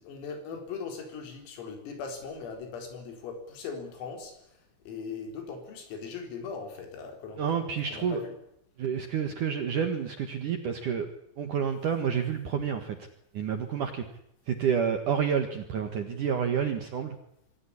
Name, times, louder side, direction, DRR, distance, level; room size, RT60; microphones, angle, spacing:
voice 1, 0.0-8.4, left 5 dB, 85° left, 5 dB, 6.8 m, -40 dB
voice 2, 7.4-8.2 8.8-11.1 11.4-13.1 13.3-14.1 14.5-17.2, right 7 dB, 65° right, 7 dB, 2.1 m, -29 dB
25.0 x 16.0 x 9.8 m, 0.78 s
omnidirectional pair, 5.9 m